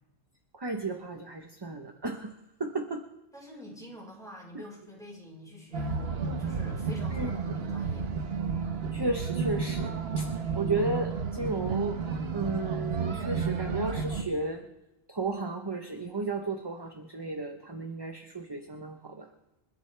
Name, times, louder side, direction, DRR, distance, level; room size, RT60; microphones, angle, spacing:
voice 1, 0.5-2.3 2.6-3.0 4.5-4.6 7.1-7.6 8.9-10.3 10.6-12.0 12.3-14.6 15.1-19.3, right 3 dB, 20° right, 4 dB, 0.9 m, -34 dB
voice 2, 3.3-8.1, equal, ahead, -3 dB, 4.8 m, -46 dB
sound 1, 5.7-14.2, right 5 dB, 50° right, 1.2 m, -31 dB
28.5 x 11.5 x 3.4 m, 0.98 s
omnidirectional pair, 1.4 m